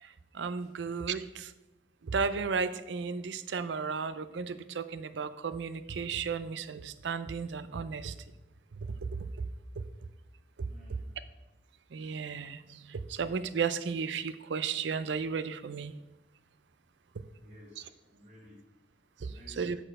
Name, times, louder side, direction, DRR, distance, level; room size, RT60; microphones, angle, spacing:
voice 1, 0.0-1.5 2.0-8.1 9.0-9.1 9.8-9.9 10.6-10.7 11.9-15.9 19.2-19.8, right 5 dB, 75° right, 14 dB, 0.5 m, -34 dB
voice 2, 10.7-11.1 17.4-18.6 19.2-19.7, left 1 dB, 35° right, -8 dB, 1.7 m, -55 dB
7.9 x 4.4 x 6.3 m, 1.0 s
head